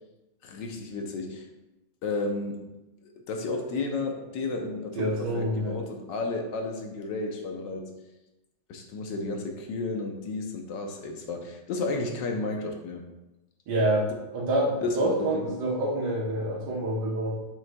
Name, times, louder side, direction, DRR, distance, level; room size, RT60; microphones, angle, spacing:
voice 1, 0.4-1.5 2.0-2.6 3.3-7.9 8.7-13.0 14.8-15.4, left 3 dB, 65° left, 3 dB, 1.4 m, -32 dB
voice 2, 5.0-5.7 13.7-14.1 14.3-17.3, right 1 dB, 90° right, -5 dB, 2.0 m, -27 dB
7.2 x 6.2 x 2.3 m, 1.0 s
omnidirectional pair, 2.3 m